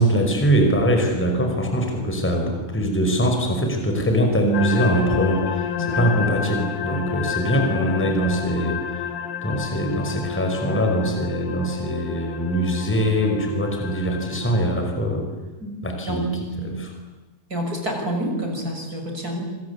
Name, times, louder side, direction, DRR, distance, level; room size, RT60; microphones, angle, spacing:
voice 1, 0.0-8.8 9.4-15.3 15.8-16.9, equal, 5° left, 3 dB, 4.9 m, -22 dB
sound 1, 4.5-14.8, left 8 dB, 60° left, 2.5 m, -30 dB
voice 2, 17.5-19.4, equal, 20° right, 2 dB, 6.5 m, -28 dB
26.5 x 26.0 x 8.5 m, 1.2 s
omnidirectional pair, 5.1 m